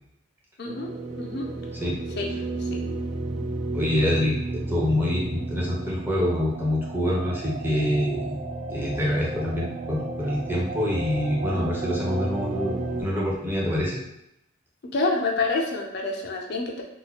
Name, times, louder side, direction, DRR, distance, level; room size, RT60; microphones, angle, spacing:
voice 1, 0.6-0.9 1.2-1.5 2.2-2.3 2.7-2.8 14.9-16.8, left 3 dB, 55° left, 1 dB, 0.5 m, -27 dB
sound 1, 0.6-13.0, right 2 dB, 40° right, 0.4 m, -32 dB
voice 2, 3.7-8.4 8.7-14.0, left 1 dB, 10° right, -4 dB, 0.7 m, -26 dB
2.9 x 2.1 x 4.0 m, 0.82 s
head